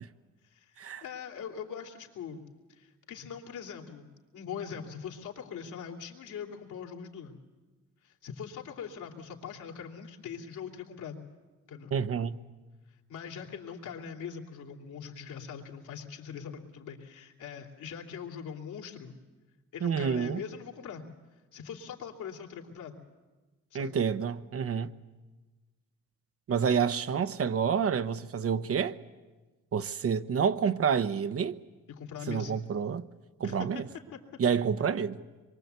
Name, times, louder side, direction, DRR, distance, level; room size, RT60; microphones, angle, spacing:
voice 1, 0.5-2.4 2.7-4.1 4.3-7.3 8.0-11.2 11.7-11.9 13.1-19.2 19.7-21.0 21.5-23.0 23.7-24.0 31.9-32.6 33.4-33.7 34.1-34.2, left 7 dB, 80° left, 3.1 m, -42 dB
voice 2, 11.9-12.4 19.8-20.4 23.7-24.9 26.5-29.0 29.7-31.6 32.3-33.1 33.4-33.8 34.4-35.2, right 7 dB, 50° right, 1.0 m, -28 dB
25.5 x 23.0 x 8.2 m
cardioid pair, 90°, 30 cm